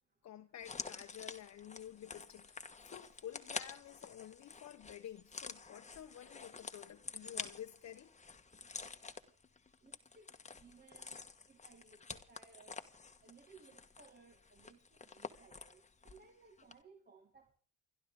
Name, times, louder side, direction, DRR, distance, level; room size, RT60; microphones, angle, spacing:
voice 1, 0.2-8.1, left 11 dB, 65° left, 1.1 m, -51 dB
sound 1, 0.6-16.3 16.6-16.7, left 4 dB, 25° left, 1.4 m, -49 dB
voice 2, 9.8-10.3 10.6-11.2 11.5-12.8 13.2-17.5, right 4 dB, 30° right, 2.3 m, -62 dB
29.0 x 12.0 x 3.8 m
cardioid pair, 90°, 30 cm